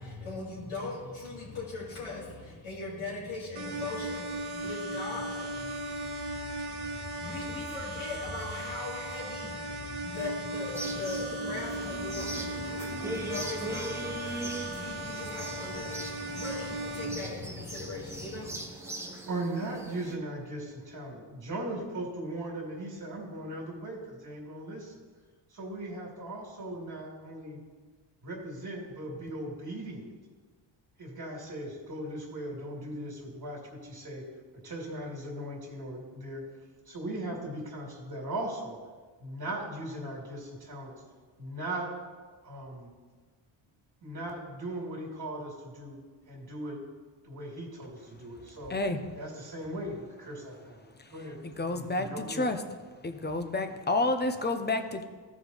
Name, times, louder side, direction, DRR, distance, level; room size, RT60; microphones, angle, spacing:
voice 1, 0.0-18.6, left 3 dB, 90° left, -10 dB, 2.7 m, -39 dB
sound 1, 3.6-17.1, right 1 dB, 85° right, 1.5 m, -37 dB
sound 2, 10.7-20.2, right 1 dB, 5° right, 1.0 m, -40 dB
voice 2, 19.2-24.9 25.5-27.6 28.2-30.1 31.0-34.2 34.6-36.4 36.9-38.8 39.2-41.0 41.4-41.9 42.4-42.9 44.0-46.0 46.3-46.8 47.2-48.7 49.1-52.5, right 1 dB, 50° right, -2 dB, 2.2 m, -38 dB
voice 3, 48.7-49.0 51.0-51.1 51.4-52.6 53.0-55.0, left 2 dB, 20° left, 7 dB, 0.7 m, -30 dB
14.5 x 5.0 x 4.0 m, 1.4 s
cardioid pair, 100°, 47 cm